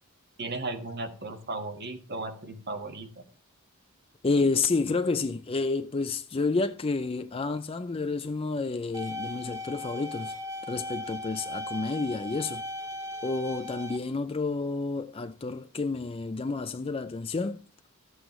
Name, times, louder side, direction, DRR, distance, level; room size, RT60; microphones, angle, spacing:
voice 1, 0.4-3.2, right 2 dB, 45° right, 1.6 m, -36 dB
voice 2, 4.2-10.4 10.7-12.6 13.2-17.6, left 3 dB, 25° left, 0.4 m, -30 dB
sound 1, 8.9-14.0, left 1 dB, 15° right, 1.8 m, -37 dB
14.0 x 8.0 x 3.1 m
head